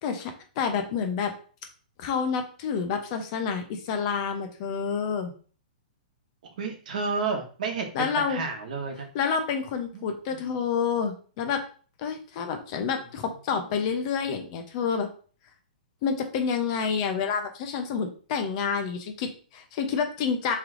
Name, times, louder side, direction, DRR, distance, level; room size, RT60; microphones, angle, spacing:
voice 1, 0.0-1.3 2.0-5.3 7.9-8.4 9.1-11.6 12.0-15.1 16.0-20.6, left 6 dB, 40° left, 5 dB, 0.8 m, -28 dB
voice 2, 6.4-9.1 9.9-10.0 10.3-10.4 13.5-13.6, right 4 dB, 60° right, 3 dB, 1.1 m, -31 dB
3.3 x 3.2 x 3.7 m, 0.40 s
hypercardioid pair, 155°, 5 cm